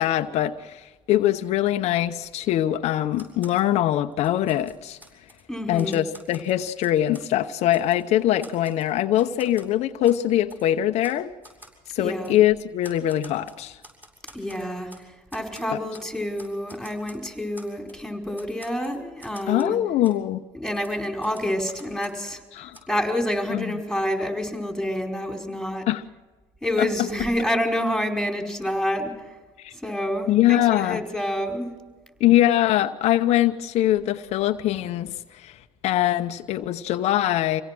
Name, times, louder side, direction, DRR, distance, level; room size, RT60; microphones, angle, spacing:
voice 1, 0.0-5.0 5.7-11.3 11.9-13.8 15.7-15.8 19.5-20.4 22.6-22.8 23.5-23.7 25.9-26.0 26.8-27.1 29.6-29.7 30.3-31.0 32.2-37.6, left 13 dB, 70° left, 7 dB, 0.9 m, -23 dB
Typewriter, 3.1-3.7 4.1-5.4 5.8-7.3 7.7-8.0 8.4-9.7 10.0-10.2 10.5-10.6 11.0-11.2 11.4-11.8 12.2-12.4 12.8-15.0 15.3-16.1 16.4-18.0 18.3-19.8 20.0-20.2 20.7-22.3 22.7-22.8, equal, 15° right, 7.2 m, -49 dB
voice 2, 5.5-6.0 12.0-12.4 14.3-15.1 15.3-19.8 20.5-22.4 22.9-25.9 26.6-29.3 29.7-31.9, equal, ahead, 3 dB, 5.1 m, -28 dB
26.0 x 17.5 x 6.1 m, 1.3 s
supercardioid pair, 80°, 11 cm